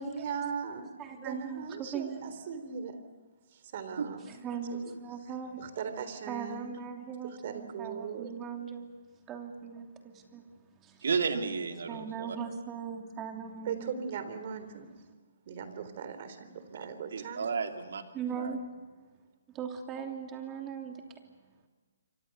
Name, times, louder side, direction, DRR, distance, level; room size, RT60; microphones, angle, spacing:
voice 1, 0.0-3.0 3.5-4.3 4.7-4.9 5.6-6.8 7.2-8.3 13.7-14.9 15.5-17.4, right 6 dB, 45° right, 10 dB, 3.6 m, -39 dB
voice 2, 1.0-2.3 4.4-5.6 6.3-8.9 9.3-10.4 10.8-11.0 11.9-14.0 18.1-18.6 19.5-21.0, right 7 dB, 20° right, 3 dB, 3.0 m, -39 dB
voice 3, 11.0-12.4 16.7-16.8 17.1-18.0 18.3-18.6, right 5 dB, 70° right, 5 dB, 2.9 m, -32 dB
28.5 x 24.5 x 6.9 m, 1.3 s
hypercardioid pair, 150°, 0 cm